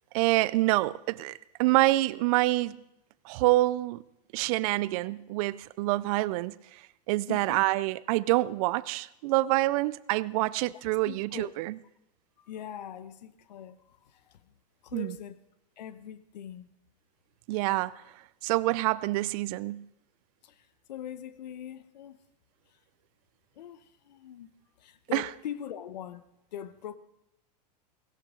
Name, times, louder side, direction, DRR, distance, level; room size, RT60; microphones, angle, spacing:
voice 1, 0.1-2.8 3.2-4.0 4.3-11.7 14.9-15.1 17.5-18.0 18.4-19.8 25.1-25.3, right 19 dB, 55° right, 0.4 m, -27 dB
voice 2, 7.3-7.6 10.7-11.5 12.4-14.5 14.8-15.4 15.8-16.7 20.4-22.2 22.7-22.8 23.6-24.5 24.8-26.3 26.5-27.0, left 10 dB, 90° left, 0.9 m, -42 dB
17.0 x 16.5 x 3.8 m
supercardioid pair, 130°, 21 cm